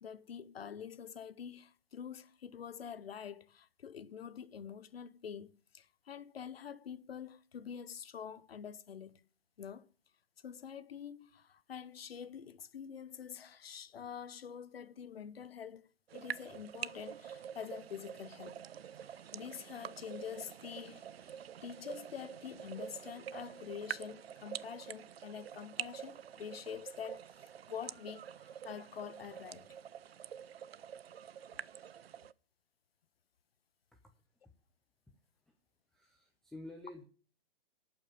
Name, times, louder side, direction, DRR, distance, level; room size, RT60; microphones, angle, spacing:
voice 1, 0.0-9.2 9.6-9.9 10.4-18.7 19.0-27.2 27.7-29.7, left 8 dB, 75° left, 1.0 m, -46 dB
sound 1, 16.1-32.3, right 9 dB, 85° right, 0.6 m, -47 dB
voice 2, 35.9-37.0, left 1 dB, ahead, 0.5 m, -50 dB
11.5 x 5.7 x 8.6 m
hypercardioid pair, 145°, 30 cm